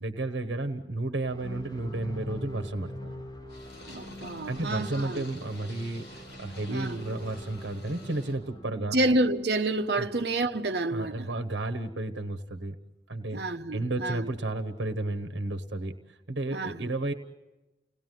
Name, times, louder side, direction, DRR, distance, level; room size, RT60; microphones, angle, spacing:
voice 1, 0.0-3.3 4.5-9.0 10.0-10.1 10.9-12.8 13.1-13.4 13.7-17.1, right 2 dB, 90° right, 1.2 m, -32 dB
sound 1, 1.2-11.3, equal, 25° left, 4.0 m, -44 dB
Purr, 3.5-8.4, left 1 dB, 65° left, 6.9 m, -48 dB
voice 2, 3.9-5.3 6.7-7.0 8.7-11.3 13.3-14.3 16.5-16.9, right 2 dB, 65° right, 1.2 m, -29 dB
29.5 x 18.5 x 9.3 m
head